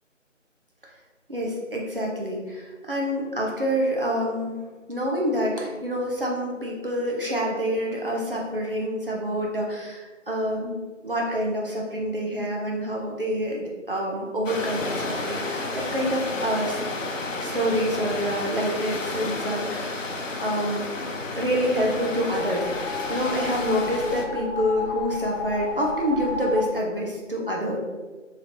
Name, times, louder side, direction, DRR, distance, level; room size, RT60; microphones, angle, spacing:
voice 1, 1.3-4.6 4.9-10.8 11.0-16.8 17.4-20.1 20.4-20.9 21.4-27.8, equal, 45° right, -2 dB, 0.7 m, -27 dB
sound 1, 14.5-24.3, left 2 dB, 85° left, 0.7 m, -31 dB
sound 2, 21.5-26.6, left 3 dB, 25° right, 1.3 m, -33 dB
4.2 x 3.2 x 2.6 m, 1.3 s
figure-of-eight pair, 175°, 38 cm